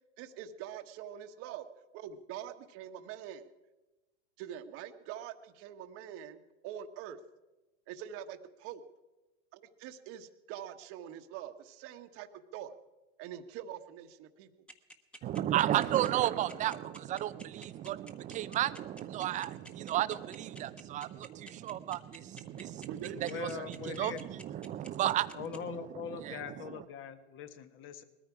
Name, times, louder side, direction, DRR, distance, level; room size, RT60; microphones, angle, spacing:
voice 1, 0.2-1.6 1.9-3.5 4.4-7.2 7.9-8.8 9.5-12.7 13.2-14.5 15.5-16.5 22.9-23.7, right 10 dB, 40° right, 9 dB, 1.2 m, -44 dB
sound 1, 14.7-25.6, equal, 5° left, 1.1 m, -50 dB
voice 2, 15.2-25.8 26.1-26.8, right 12 dB, 20° right, 14 dB, 0.5 m, -33 dB
voice 3, 23.2-24.2 25.3-28.0, left 8 dB, 35° left, 11 dB, 1.3 m, -42 dB
20.0 x 14.0 x 4.8 m, 1.1 s
hypercardioid pair, 125°, 36 cm